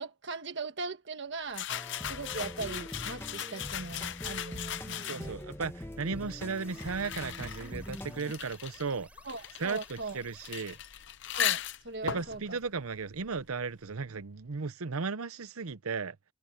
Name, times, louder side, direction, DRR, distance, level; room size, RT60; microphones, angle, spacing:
voice 1, 0.0-1.7 2.1-5.3 9.2-10.2 11.3-12.6, right 3 dB, 55° right, 1.6 m, -39 dB
sound 1, 1.5-5.5 6.3-13.7, left 10 dB, 55° left, 0.7 m, -38 dB
sound 2, 1.7-8.3, left 1 dB, 10° left, 1.4 m, -43 dB
voice 2, 5.0-9.1 9.6-10.8 12.0-16.2, right 4 dB, 80° right, 0.8 m, -35 dB
sound 3, 5.8-10.9, right 2 dB, 5° right, 4.2 m, -59 dB
head